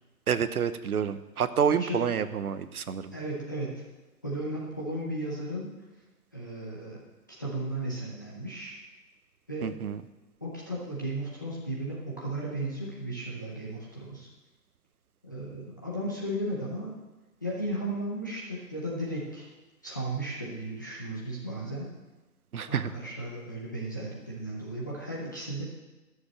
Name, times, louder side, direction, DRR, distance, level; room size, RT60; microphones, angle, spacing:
voice 1, 0.3-3.1 9.6-10.0 22.5-22.9, right 7 dB, 60° right, 12 dB, 0.9 m, -28 dB
voice 2, 1.6-2.0 3.1-3.8 4.2-5.7 6.3-7.0 7.4-8.8 9.5-9.7 10.4-14.3 15.2-17.0 17.4-19.5 19.8-21.9 22.7-25.6, right 1 dB, 10° left, -6 dB, 0.7 m, -35 dB
13.0 x 6.8 x 7.3 m, 1.1 s
hypercardioid pair, 165°, 50 cm